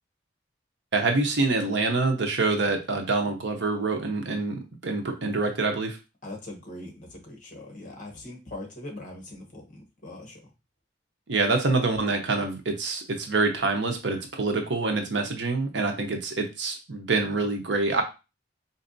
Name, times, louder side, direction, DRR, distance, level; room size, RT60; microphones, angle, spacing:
voice 1, 0.9-6.0 11.3-18.0, right 3 dB, 70° right, 4 dB, 0.8 m, -26 dB
voice 2, 6.2-10.5, left 1 dB, 45° left, 1 dB, 1.2 m, -41 dB
4.4 x 2.7 x 2.6 m, 0.27 s
head